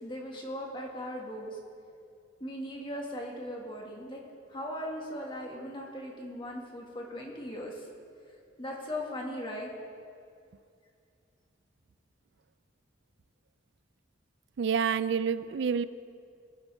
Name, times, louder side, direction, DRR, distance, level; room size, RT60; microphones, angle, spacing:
voice 1, 0.0-1.6 2.4-4.2 4.5-7.9 8.6-9.7, equal, 25° left, -1 dB, 1.9 m, -38 dB
voice 2, 14.6-15.8, right 6 dB, 65° right, 15 dB, 0.4 m, -28 dB
19.5 x 11.5 x 3.5 m, 2.3 s
head